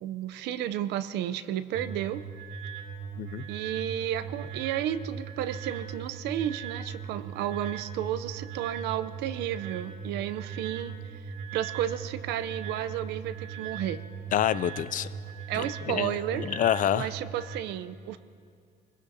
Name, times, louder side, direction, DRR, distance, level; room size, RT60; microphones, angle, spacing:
voice 1, 0.0-2.2 3.5-10.9 11.5-14.0 15.5-16.5 16.9-18.2, right 11 dB, 85° right, 12 dB, 0.7 m, -32 dB
sound 1, 1.7-17.6, right 6 dB, 65° right, 3.2 m, -39 dB
voice 2, 14.3-15.1 15.5-17.1, left 11 dB, 50° left, 16 dB, 0.5 m, -28 dB
24.5 x 21.0 x 2.8 m, 2.3 s
cardioid pair, 110°, 17 cm